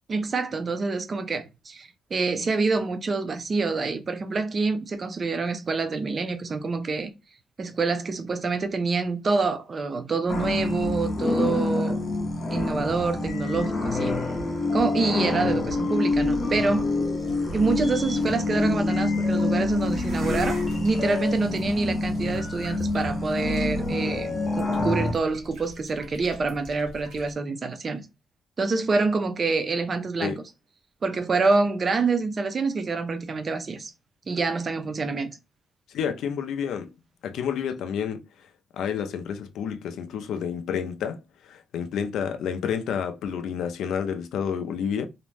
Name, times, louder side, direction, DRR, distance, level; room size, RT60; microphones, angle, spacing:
voice 1, 0.1-7.1 7.6-12.0 12.5-14.2 14.7-16.9 17.5-28.1 28.6-30.4 31.0-33.9 34.3-35.4, right 4 dB, 30° right, 0.4 m, -26 dB
sound 1, 10.3-25.1, left 2 dB, 30° left, 0.6 m, -26 dB
sound 2, 16.2-27.3, equal, 80° right, 1.2 m, -43 dB
voice 2, 35.9-36.9 37.2-38.2 38.7-45.1, left 7 dB, 80° left, 0.4 m, -29 dB
2.4 x 2.0 x 3.2 m
cardioid pair, 155°, 0 cm